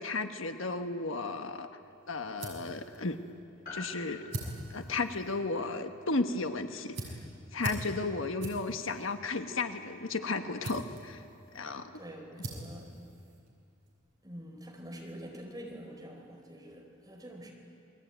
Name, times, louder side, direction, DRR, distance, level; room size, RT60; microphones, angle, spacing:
voice 1, 0.0-1.7 2.1-3.2 3.7-4.2 4.7-7.2 7.5-11.2 11.5-12.0, left 3 dB, 70° left, 7 dB, 1.3 m, -34 dB
sound 1, 1.8-13.9, right 1 dB, 55° right, 6.4 m, -45 dB
Piano, 3.6-8.3 8.5-8.6, left 2 dB, 50° left, 5.8 m, -50 dB
voice 2, 11.9-12.9 14.2-17.5, equal, 20° right, 0 dB, 4.4 m, -46 dB
29.0 x 21.5 x 9.2 m, 2.4 s
head